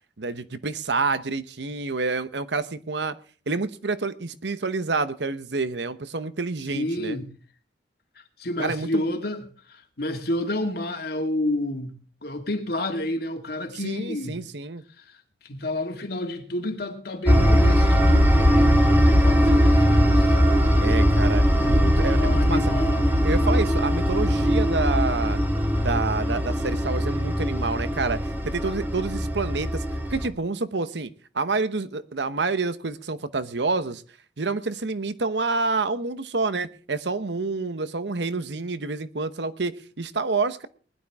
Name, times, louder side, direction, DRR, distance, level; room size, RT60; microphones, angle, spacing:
voice 1, 0.2-3.2 3.5-7.2 8.6-9.0 13.7-14.8 20.8-22.6 23.2-25.4 25.8-29.8 30.1-31.1 31.3-34.0 34.4-40.7, right 3 dB, 75° right, 1.0 m, -28 dB
voice 2, 6.7-7.3 8.4-11.9 12.2-14.4 15.1-15.2 15.4-20.4 20.7-20.8 21.6-23.0, left 1 dB, 60° left, 2.1 m, -30 dB
sound 1, 17.3-30.3, equal, 10° right, 1.9 m, -20 dB
20.0 x 11.5 x 3.6 m
head